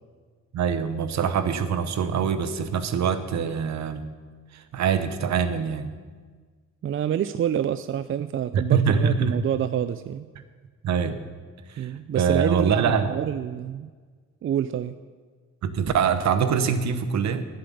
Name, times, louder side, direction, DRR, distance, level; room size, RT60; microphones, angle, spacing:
voice 1, 0.5-4.1 4.5-5.9 8.5-9.4 10.8-11.2 11.7-13.2 15.6-17.5, right 6 dB, 65° right, 11 dB, 1.1 m, -24 dB
voice 2, 6.8-10.3 11.8-13.9 14.4-15.0, right 9 dB, 45° right, 12 dB, 0.4 m, -27 dB
11.0 x 7.8 x 8.5 m, 1.5 s
cardioid pair, 90°, 30 cm